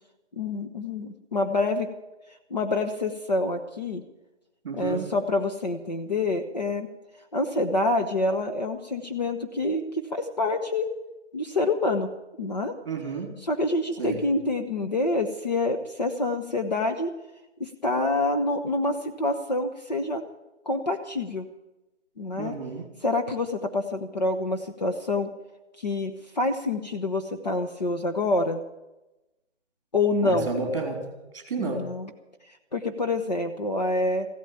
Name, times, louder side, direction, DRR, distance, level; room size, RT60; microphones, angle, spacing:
voice 1, 0.4-1.9 2.5-4.0 4.7-6.9 7.3-10.9 11.3-12.1 12.4-12.8 13.4-17.1 17.6-20.2 20.7-21.5 22.2-22.5 23.0-25.3 25.8-28.6 29.9-30.5 31.6-32.1 32.7-34.3, left 2 dB, 35° left, 4 dB, 0.9 m, -27 dB
voice 2, 4.6-5.1 12.8-13.4 14.0-14.2 22.4-22.8 30.2-31.9, right 4 dB, 30° right, 5 dB, 3.1 m, -31 dB
15.5 x 9.1 x 8.8 m, 1.0 s
hypercardioid pair, 170°, 36 cm